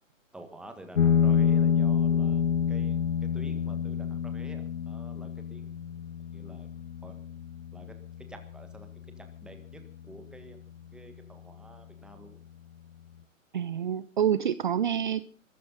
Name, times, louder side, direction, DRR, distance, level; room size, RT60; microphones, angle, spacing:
voice 1, 0.3-5.7 6.3-6.7 7.0-7.2 7.7-8.9 9.2-10.6 10.9-12.4, right 1 dB, ahead, 6 dB, 1.6 m, -49 dB
sound 1, 0.9-10.0, left 7 dB, 55° left, 0.8 m, -28 dB
voice 2, 13.5-15.2, right 9 dB, 35° right, 15 dB, 0.7 m, -27 dB
23.0 x 13.5 x 4.0 m, 0.43 s
figure-of-eight pair, 140°, 40 cm